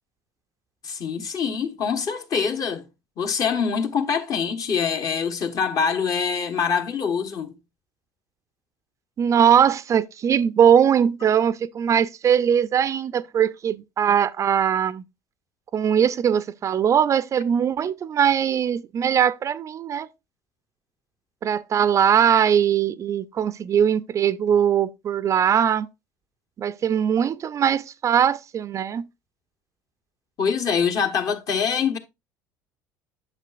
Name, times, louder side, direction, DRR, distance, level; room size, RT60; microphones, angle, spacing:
voice 1, 0.8-2.9 3.2-7.5 30.4-32.0, left 6 dB, 45° left, 1.3 m, -24 dB
voice 2, 9.2-15.0 15.7-20.1 21.4-25.9 26.6-29.1, right 8 dB, 40° right, 0.5 m, -21 dB
8.2 x 6.6 x 2.5 m
hypercardioid pair, 80°, 8 cm